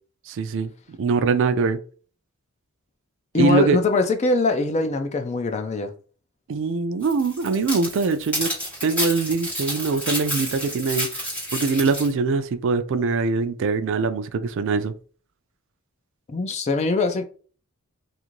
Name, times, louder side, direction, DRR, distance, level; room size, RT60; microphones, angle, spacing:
voice 1, 0.3-0.7 1.0-1.8 3.4-3.8 6.5-8.5 8.8-14.9, right 4 dB, 60° right, 0.3 m, -23 dB
voice 2, 3.3-5.9 16.3-17.2, left 3 dB, 30° left, 0.4 m, -22 dB
sound 1, 7.0-12.1, equal, 5° left, 1.3 m, -30 dB
2.5 x 2.5 x 3.0 m
head